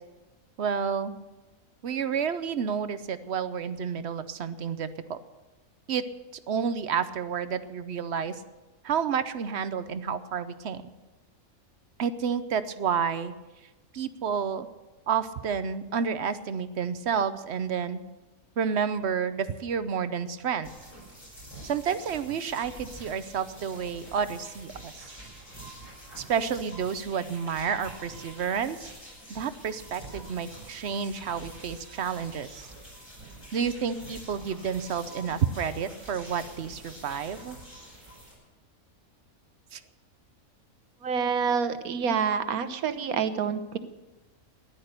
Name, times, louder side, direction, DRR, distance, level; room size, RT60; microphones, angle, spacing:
voice 1, 0.6-1.1 1.8-5.2 5.9-6.0 6.5-8.3 8.8-10.8 12.0-13.3 13.9-14.7 15.1-18.0 18.6-20.7 21.6-25.1 26.2-28.9 29.3-32.7 33.5-37.6 39.7-39.8, right 7 dB, 55° right, 12 dB, 0.9 m, -30 dB
sound 1, 20.6-38.3, right 1 dB, 30° left, 7.2 m, -46 dB
voice 2, 41.0-43.8, right 6 dB, 80° right, 11 dB, 1.4 m, -27 dB
14.5 x 11.0 x 6.7 m, 1.1 s
omnidirectional pair, 1.5 m